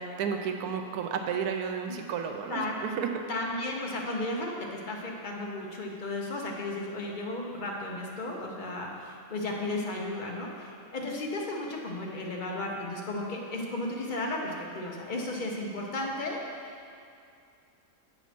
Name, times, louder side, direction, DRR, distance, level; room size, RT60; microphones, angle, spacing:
voice 1, 0.0-3.1, right 7 dB, 90° right, 5 dB, 1.1 m, -32 dB
voice 2, 3.3-16.7, left 2 dB, 40° left, -1 dB, 0.9 m, -34 dB
8.1 x 4.2 x 5.9 m, 2.4 s
omnidirectional pair, 1.6 m